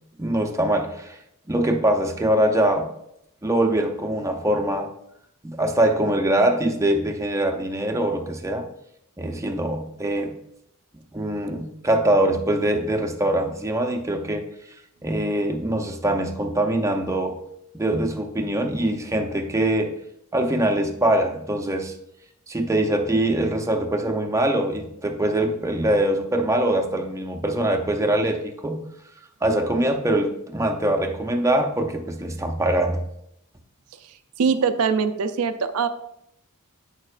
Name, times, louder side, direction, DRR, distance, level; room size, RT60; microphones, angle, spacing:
voice 1, 0.2-1.2 1.5-2.9 3.4-4.9 5.4-8.7 9.2-10.3 11.1-14.5 15.0-17.4 17.7-19.9 20.3-21.9 22.5-28.9 29.4-33.0, right 1 dB, 15° right, 4 dB, 0.5 m, -23 dB
voice 2, 34.4-35.9, right 6 dB, 70° right, 10 dB, 0.4 m, -22 dB
8.7 x 6.5 x 2.4 m, 0.79 s
head